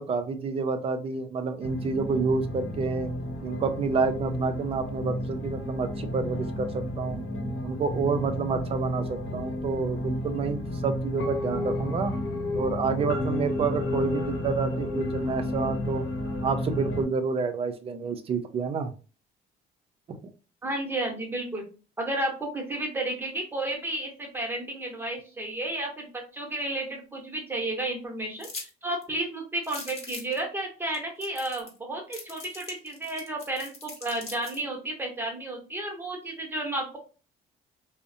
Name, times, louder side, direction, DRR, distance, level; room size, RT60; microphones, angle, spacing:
voice 1, 0.0-3.1 3.4-7.2 7.6-12.1 12.5-16.1 16.4-18.9 20.1-20.2, right 5 dB, 35° right, 7 dB, 0.4 m, -29 dB
sound 1, 1.6-17.0, left 1 dB, 80° left, 0.9 m, -32 dB
voice 2, 20.6-21.7 22.0-37.0, right 1 dB, 15° right, 1 dB, 0.8 m, -32 dB
sound 2, 28.4-28.7 29.0-29.1 29.6-30.4 30.9-31.0 31.2-31.8 32.1-34.6, left 3 dB, 35° left, 0.9 m, -41 dB
2.6 x 2.0 x 2.6 m, 0.35 s
cardioid pair, 110°, 17 cm